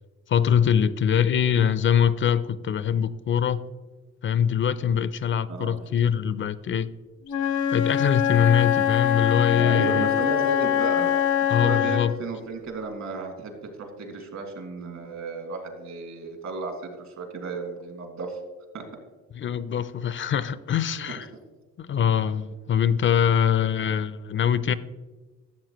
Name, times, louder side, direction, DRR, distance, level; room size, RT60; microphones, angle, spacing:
voice 1, 0.3-3.6 4.2-6.9 7.7-10.1 11.5-12.1 19.3-21.3 21.8-24.7, left 8 dB, 40° left, 16 dB, 0.4 m, -23 dB
voice 2, 5.5-5.8 9.5-11.1 11.6-18.4 18.7-18.8, right 3 dB, 65° right, 3 dB, 2.1 m, -33 dB
Wind instrument woodwind instrument, 7.3-12.2, left 10 dB, 80° left, 0.9 m, -23 dB
12.5 x 7.2 x 3.0 m, 1.2 s
cardioid pair, 90°, 30 cm